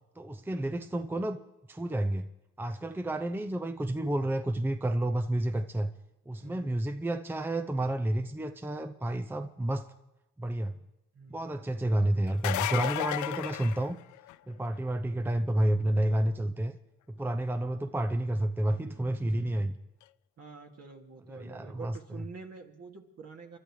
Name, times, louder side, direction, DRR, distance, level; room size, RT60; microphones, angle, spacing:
voice 1, 0.2-1.4 1.7-2.3 2.6-5.9 6.3-9.9 10.4-10.7 11.3-14.0 14.5-16.8 17.2-19.7 21.3-22.2, right 1 dB, 5° right, 9 dB, 0.6 m, -30 dB
voice 2, 6.4-6.8 11.1-11.6 17.5-18.0 20.4-23.6, right 4 dB, 55° right, 2 dB, 2.5 m, -48 dB
sound 1, 12.3-14.5 20.0-20.1 21.9-22.0, left 15 dB, 70° left, 0.4 m, -33 dB
29.0 x 12.5 x 3.2 m, 0.97 s
cardioid pair, 90°, 30 cm